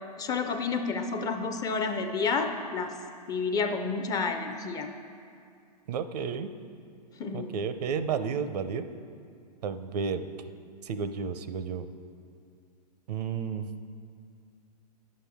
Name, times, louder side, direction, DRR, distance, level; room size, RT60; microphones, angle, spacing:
voice 1, 0.2-2.9 3.3-4.9 7.2-7.6, left 4 dB, 15° left, 5 dB, 0.4 m, -30 dB
voice 2, 5.9-6.5 7.3-8.9 9.6-10.3 10.8-11.9 13.1-13.7, right 6 dB, 70° right, 11 dB, 0.6 m, -32 dB
10.5 x 7.5 x 3.5 m, 2.3 s
hypercardioid pair, 130°, 21 cm